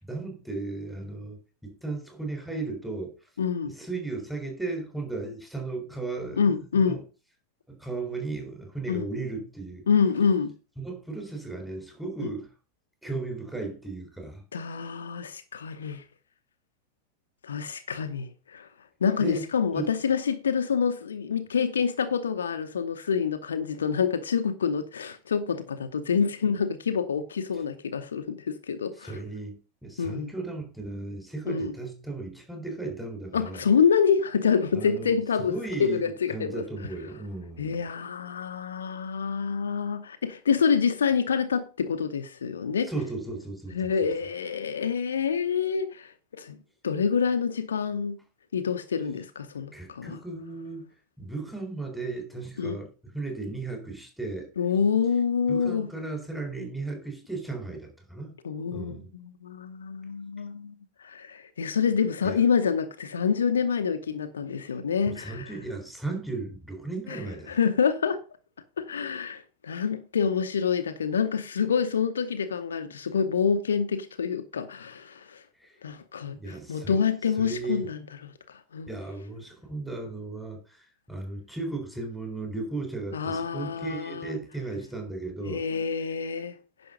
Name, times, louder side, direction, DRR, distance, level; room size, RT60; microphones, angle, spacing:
voice 1, 0.0-3.1 3.6-6.4 6.7-7.0 7.7-9.9 10.8-12.5 13.0-14.4 19.2-19.4 19.7-19.9 29.0-33.6 34.7-35.1 35.4-37.8 42.9-43.9 49.7-50.8 51.2-54.5 55.5-58.3 58.7-59.1 62.2-62.4 65.0-67.6 75.6-75.8 76.3-77.0 77.4-77.9 78.9-85.6, right 3 dB, ahead, 3.8 m, -35 dB
voice 2, 3.4-3.8 6.4-7.0 8.9-9.1 9.9-10.5 12.2-12.3 14.5-16.0 17.4-18.7 19.0-29.2 30.0-30.3 31.5-31.7 33.3-36.6 37.6-42.9 43.7-46.6 46.8-48.2 48.5-50.2 52.6-52.8 54.6-55.9 58.4-65.5 67.1-68.2 68.8-75.4 75.8-78.9 83.1-84.4 85.5-86.6, left 6 dB, 70° left, 0.9 m, -27 dB
10.5 x 6.2 x 5.0 m
figure-of-eight pair, 90°, 0 cm